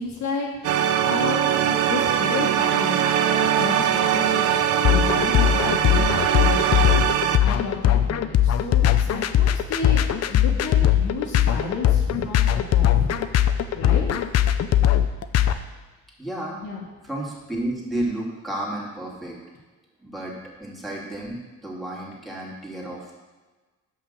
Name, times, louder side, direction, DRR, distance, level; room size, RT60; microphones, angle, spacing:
voice 1, 0.0-3.1 3.4-13.1 13.7-14.2 16.5-16.8, left 4 dB, 75° left, -4 dB, 1.5 m, -32 dB
sound 1, 0.6-7.4, right 9 dB, 80° right, 0.6 m, -21 dB
sound 2, 4.8-15.5, left 10 dB, 55° left, 0.5 m, -20 dB
voice 2, 16.2-16.6 17.0-19.4 20.0-20.3 20.6-23.1, right 1 dB, ahead, -4 dB, 2.3 m, -32 dB
5.8 x 5.5 x 6.6 m, 1.3 s
cardioid pair, 90°, 30 cm